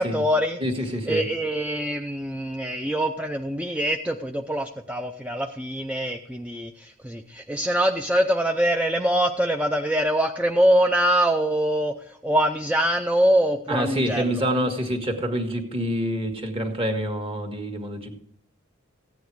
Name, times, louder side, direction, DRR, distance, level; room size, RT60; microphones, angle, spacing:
voice 1, 0.0-0.6 1.1-14.4, equal, 5° right, 4 dB, 0.5 m, -24 dB
voice 2, 0.6-1.3 13.7-18.2, equal, 25° right, 5 dB, 1.7 m, -27 dB
15.0 x 9.3 x 4.7 m, 0.67 s
head